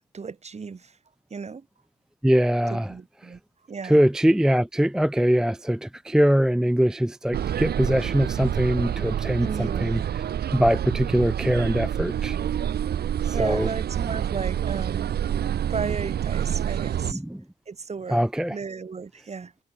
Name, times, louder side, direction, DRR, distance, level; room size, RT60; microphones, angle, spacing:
voice 1, 0.1-0.9 1.3-1.6 2.7-3.4 3.7-4.0 9.4-9.9 13.3-15.1 15.7-17.2 17.7-18.2 18.5-19.5, right 5 dB, 35° right, 2.9 m, -34 dB
voice 2, 2.2-2.9 3.8-10.2 10.5-12.4 13.3-13.7 17.1-17.4 18.1-18.6, equal, 5° right, 0.5 m, -22 dB
sound 1, 7.3-17.1, right 10 dB, 55° right, 0.8 m, -27 dB
cardioid pair, 90°, 20 cm